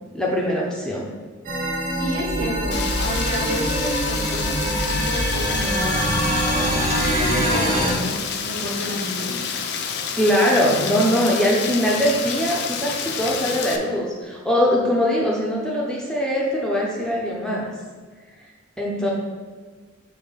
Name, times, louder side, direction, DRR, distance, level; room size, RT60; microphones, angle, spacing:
voice 1, 0.1-1.1 10.2-17.7 18.8-19.1, equal, 5° left, -4 dB, 0.6 m, -22 dB
sound 1, 1.4-7.9, right 1 dB, 45° right, 1.0 m, -23 dB
voice 2, 1.9-6.7 7.2-9.4, equal, 65° right, -4 dB, 1.7 m, -30 dB
Rain, 2.7-13.8, left 6 dB, 55° left, 0.5 m, -29 dB
5.6 x 3.1 x 5.5 m, 1.4 s
head